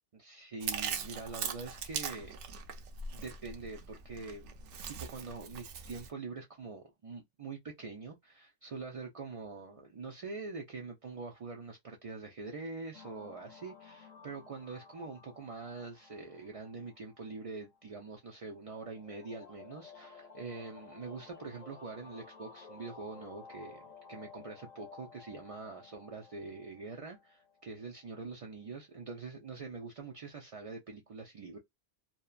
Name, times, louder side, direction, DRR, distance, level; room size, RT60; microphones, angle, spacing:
voice 1, 0.1-2.4 3.1-4.5 4.9-23.8 24.1-31.6, right 4 dB, 60° right, 0.3 m, -44 dB
Chewing mastication, 0.6-6.1, right 6 dB, 85° right, 0.9 m, -40 dB
sound 1, 12.9-28.2, left 5 dB, 40° left, 0.6 m, -55 dB
2.7 x 2.1 x 2.3 m
omnidirectional pair, 1.2 m